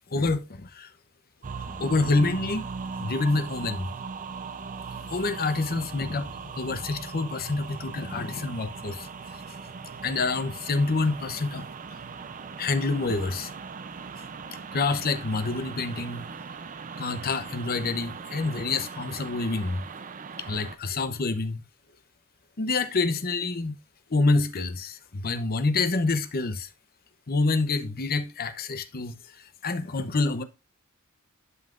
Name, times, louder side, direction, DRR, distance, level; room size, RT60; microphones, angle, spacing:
voice 1, 0.1-0.9 1.7-2.7 3.0-3.9 5.1-9.1 9.3-9.4 10.0-11.7 12.6-13.5 14.7-16.3 17.0-19.8 20.4-21.6 22.6-23.8 24.1-26.7 27.3-30.4, left 3 dB, 45° left, 0.8 m, -27 dB
sound 1, 1.4-20.8, right 5 dB, 35° right, 0.5 m, -39 dB
11.0 x 5.6 x 2.5 m
head